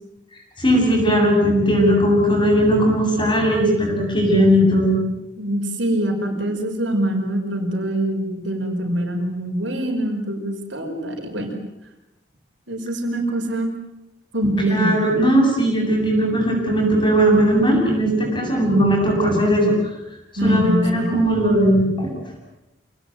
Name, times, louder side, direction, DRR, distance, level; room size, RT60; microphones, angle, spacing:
voice 1, 0.6-5.0 14.6-19.7 20.4-22.1, equal, 25° left, 0 dB, 7.6 m, -18 dB
voice 2, 5.4-11.6 12.7-13.7 14.3-14.9 20.4-21.1, right 1 dB, 75° right, 4 dB, 5.1 m, -24 dB
27.5 x 19.0 x 9.2 m, 0.93 s
head